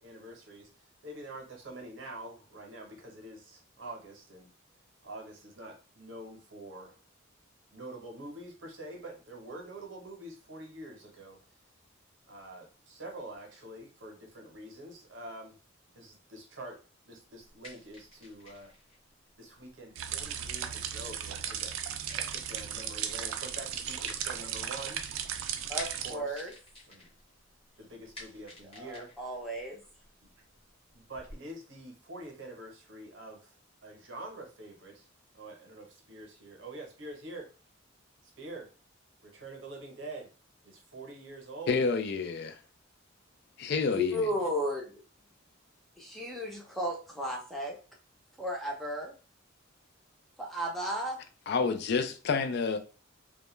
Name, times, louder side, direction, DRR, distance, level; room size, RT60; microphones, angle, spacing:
voice 1, 0.0-4.5 5.0-7.0 7.7-11.4 12.3-15.6 15.9-16.8 17.0-18.7 19.4-21.7 22.1-25.0 25.9-26.5 26.9-27.1 27.8-29.1 30.2-30.3 30.9-33.5 33.8-35.1 35.3-37.5 38.2-38.7 39.2-40.3 40.6-41.8, right 2 dB, 60° right, 0.7 m, -46 dB
sound 1, 17.4-31.3, left 2 dB, 30° left, 0.9 m, -53 dB
sound 2, 20.0-26.1, right 9 dB, 80° right, 0.3 m, -36 dB
voice 2, 25.7-26.5 28.7-29.8 43.9-45.0 46.0-47.8 48.4-49.1 50.4-51.2, equal, ahead, 0.5 m, -34 dB
voice 3, 41.7-42.6 43.6-44.3 51.5-52.8, left 5 dB, 55° left, 0.3 m, -29 dB
2.2 x 2.1 x 3.0 m
head